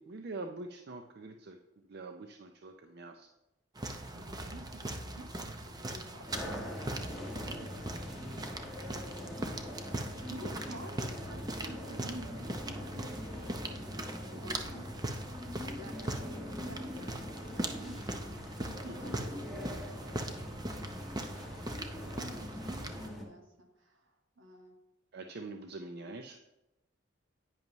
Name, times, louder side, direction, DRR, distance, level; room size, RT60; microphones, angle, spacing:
voice 1, 0.0-3.3 10.2-10.5 18.9-19.2 20.7-20.8 22.0-22.5 25.1-26.4, right 3 dB, 55° right, 5 dB, 0.5 m, -45 dB
sound 1, 3.8-23.1, right 1 dB, 20° right, 0.7 m, -40 dB
voice 2, 4.1-8.7 10.3-14.9 15.4-19.6 22.1-24.8, right 1 dB, 75° right, 3 dB, 1.6 m, -51 dB
sound 2, 6.3-23.2, left 1 dB, ahead, 1.6 m, -43 dB
10.5 x 9.4 x 3.0 m, 0.96 s
head